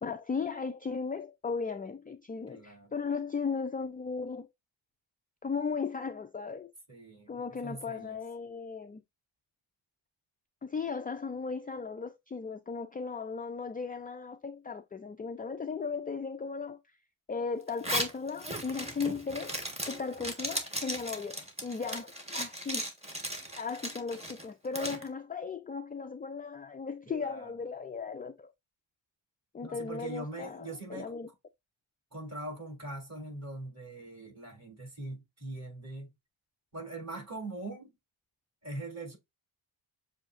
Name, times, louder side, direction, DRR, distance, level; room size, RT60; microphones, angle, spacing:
voice 1, 0.0-4.5 5.4-6.7 7.3-9.0 10.6-16.8 17.3-22.9 23.6-28.5 29.5-31.3, left 5 dB, 20° left, 0.4 m, -36 dB
voice 2, 2.5-2.9 6.9-8.2 27.1-27.5 29.6-31.1 32.1-36.1 36.7-37.9 38.6-39.2, right 2 dB, 30° right, 3.6 m, -42 dB
Zipper (clothing), 17.7-25.0, equal, 15° right, 1.4 m, -37 dB
6.9 x 2.8 x 2.5 m
cardioid pair, 90°, 49 cm